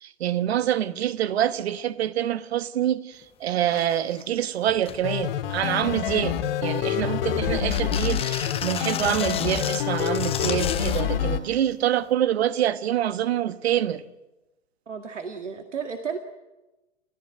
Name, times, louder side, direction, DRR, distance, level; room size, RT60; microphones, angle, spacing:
voice 1, 0.0-14.0, right 11 dB, 60° right, 1.3 m, -26 dB
sound 1, 3.2-3.3 3.6-4.2 4.7-5.0 5.5-5.9 6.4-7.2 7.7-11.1 12.1-12.2, left 9 dB, 15° left, 1.2 m, -34 dB
sound 2, 5.0-11.4, left 10 dB, 50° left, 2.4 m, -27 dB
voice 2, 14.9-16.2, right 6 dB, 75° right, 1.9 m, -33 dB
29.0 x 14.5 x 9.1 m
figure-of-eight pair, 115°, 36 cm